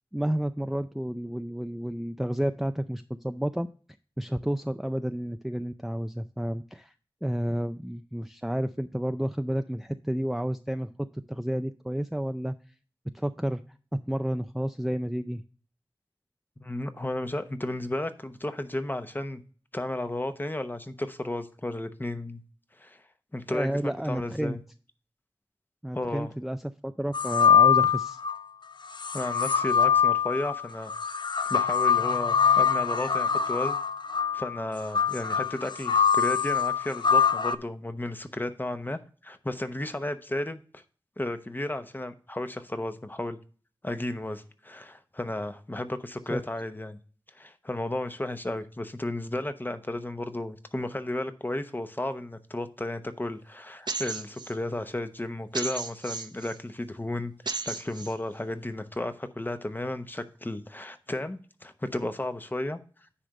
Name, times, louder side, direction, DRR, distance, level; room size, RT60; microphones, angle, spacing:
voice 1, 0.1-3.7 4.2-6.9 7.2-10.9 11.3-12.6 13.1-13.6 14.1-15.4 23.5-24.6 25.8-28.2 46.3-46.4, equal, ahead, 0.4 m, -31 dB
voice 2, 16.6-19.4 19.7-22.4 22.8-23.0 23.3-24.6 25.9-26.3 29.1-30.9 31.5-33.8 34.3-40.8 41.2-43.4 43.8-47.0 47.3-62.8, left 1 dB, 20° left, 0.9 m, -33 dB
sound 1, 27.1-28.4 29.0-37.6, left 7 dB, 55° left, 0.5 m, -24 dB
sound 2, 53.9-54.5 55.5-56.6 57.5-58.1, right 4 dB, 55° right, 0.7 m, -34 dB
9.9 x 3.4 x 6.4 m
wide cardioid pair, 55°, 9 cm